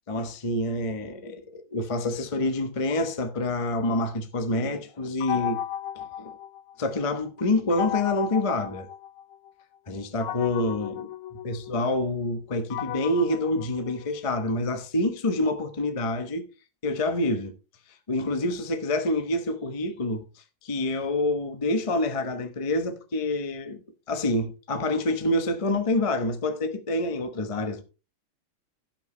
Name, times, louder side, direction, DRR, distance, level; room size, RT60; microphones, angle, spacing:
voice 1, 0.1-5.6 5.9-6.3 6.8-8.9 9.9-11.1 11.4-16.5 16.8-17.5 18.1-20.2 20.6-23.8 24.1-27.8, left 2 dB, 50° left, 0.3 m, -27 dB
sound 1, 5.2-7.0 7.7-9.5 10.2-14.5, left 10 dB, 75° left, 1.7 m, -35 dB
16.5 x 5.8 x 3.2 m
omnidirectional pair, 2.4 m